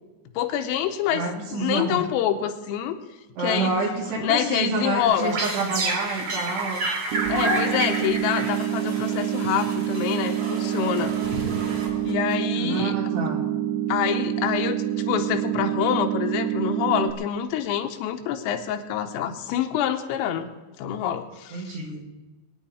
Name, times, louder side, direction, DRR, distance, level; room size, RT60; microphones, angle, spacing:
voice 1, 0.4-1.2 1.5-3.0 3.4-3.8 4.2-5.4 7.3-11.5 12.1-13.0 13.9-21.8, left 9 dB, 85° left, 6 dB, 3.6 m, -26 dB
voice 2, 1.1-2.0 3.4-6.9 12.6-13.5 21.5-22.0, right 3 dB, 60° right, 1 dB, 3.9 m, -28 dB
sound 1, 5.0-12.3, right 2 dB, 40° right, 3.1 m, -30 dB
sound 2, 7.1-17.1, right 12 dB, 85° right, 2.6 m, -27 dB
23.0 x 10.0 x 4.3 m, 1.2 s
omnidirectional pair, 5.8 m